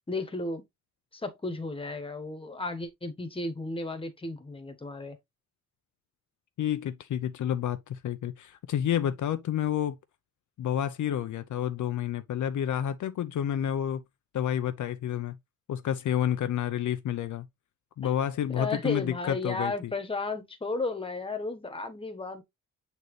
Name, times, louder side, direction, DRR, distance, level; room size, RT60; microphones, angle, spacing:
voice 1, 0.1-0.6 1.1-5.2 18.5-22.4, left 3 dB, 15° left, 1.3 m, -34 dB
voice 2, 6.6-10.0 10.6-14.0 14.3-15.4 15.7-17.5 18.0-19.9, left 10 dB, 65° left, 0.6 m, -29 dB
8.0 x 4.1 x 3.2 m
cardioid pair, 125°, 33 cm